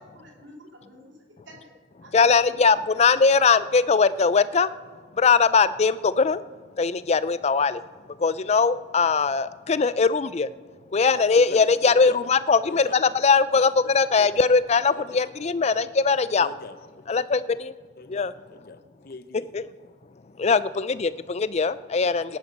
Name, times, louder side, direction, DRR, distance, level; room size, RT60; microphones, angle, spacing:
voice 1, 0.0-1.7 2.0-2.3 2.7-3.1, equal, 80° right, 0 dB, 3.0 m, -49 dB
voice 2, 2.1-4.7 5.2-6.4 6.8-7.8 8.2-10.5 10.9-16.5 17.1-17.7 18.1-18.3 19.5-19.6 20.4-22.4, left 5 dB, 35° left, 15 dB, 0.4 m, -21 dB
voice 3, 11.1-12.2 12.6-13.0 13.5-14.5 14.9-15.2 16.4-17.3 18.0-19.5 22.0-22.4, left 3 dB, 55° left, 11 dB, 0.8 m, -42 dB
18.5 x 10.0 x 5.4 m, 1.4 s
head